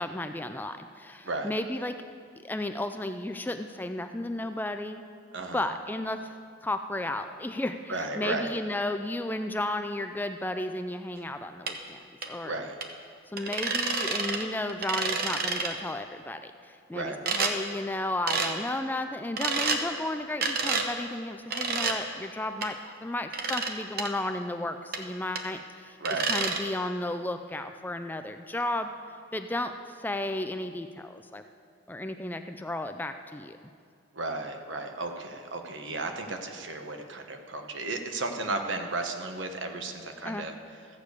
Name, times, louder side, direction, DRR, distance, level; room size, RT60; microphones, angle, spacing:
voice 1, 0.0-2.0 2.4-5.0 5.5-6.4 6.6-12.0 12.3-12.6 13.3-26.0 26.3-28.9 29.3-31.4 31.9-33.6 40.2-40.5, left 1 dB, 10° left, 8 dB, 0.3 m, -33 dB
voice 2, 5.3-5.7 7.9-8.5 12.4-12.7 16.9-17.2 26.0-26.3 34.1-40.5, right 2 dB, 70° right, 5 dB, 1.1 m, -34 dB
sound 1, 11.7-11.8 12.2-12.3 12.8-12.9 13.4-14.4 14.7-15.7 17.3-17.5 18.3-18.5 19.4-19.8 20.4-20.9 21.5-22.0 22.6-22.7 23.3-23.7 24.0-24.1 24.9-25.0 25.4-25.5 26.1-26.6, right 4 dB, 50° right, 0.9 m, -29 dB
14.0 x 6.6 x 8.2 m, 2.2 s
head